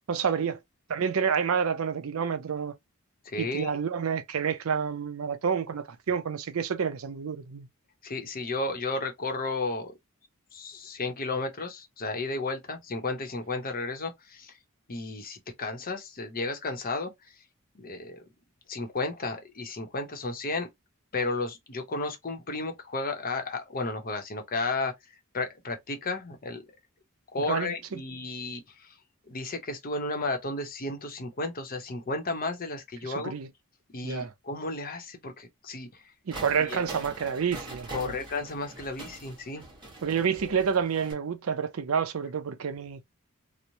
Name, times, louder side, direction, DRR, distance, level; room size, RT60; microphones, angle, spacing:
voice 1, 0.1-0.6 0.9-2.7 3.4-7.7 27.4-28.0 33.0-33.5 34.0-34.3 36.3-38.2 40.0-43.0, right 6 dB, 70° right, 0.5 m, -29 dB
voice 2, 3.2-3.7 8.0-9.9 10.5-14.5 14.9-17.1 17.7-18.2 18.7-20.7 21.1-24.9 25.3-26.6 27.3-28.9 29.3-33.3 33.9-36.0 36.6-36.8 37.9-39.6, left 3 dB, 40° left, 0.7 m, -33 dB
sound 1, 36.3-41.1, right 2 dB, 20° right, 1.1 m, -43 dB
3.0 x 2.1 x 2.6 m
head